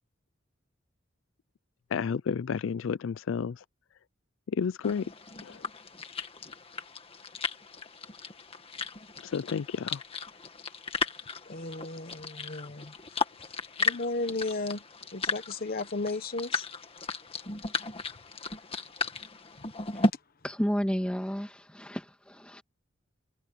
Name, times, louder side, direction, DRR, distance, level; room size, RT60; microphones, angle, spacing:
voice 1, 1.9-3.6 4.5-5.1 5.4-5.6 9.2-10.0, left 6 dB, 75° left, 0.4 m, -31 dB
sound 1, 4.8-20.1, left 3 dB, 30° left, 1.8 m, -35 dB
voice 2, 11.5-12.9 13.8-14.8 15.1-16.7, left 2 dB, 50° left, 1.1 m, -34 dB
voice 3, 20.4-22.6, equal, 5° left, 2.3 m, -32 dB
head